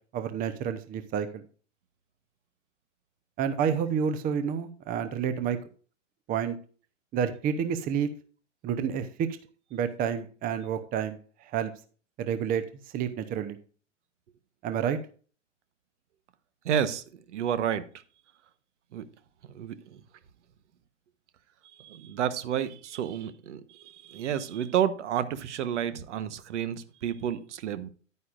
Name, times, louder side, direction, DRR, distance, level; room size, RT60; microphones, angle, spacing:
voice 1, 0.1-1.4 3.4-5.6 6.3-6.6 7.1-8.1 8.6-9.3 9.7-11.2 11.4-11.7 12.2-12.6 12.9-13.6 14.6-15.0, right 8 dB, 25° right, 10 dB, 0.8 m, -29 dB
voice 2, 16.6-17.9 18.9-19.0 19.4-20.0 21.8-27.9, right 9 dB, 65° right, 13 dB, 1.1 m, -30 dB
10.5 x 9.4 x 2.5 m, 0.39 s
hypercardioid pair, 125°, 38 cm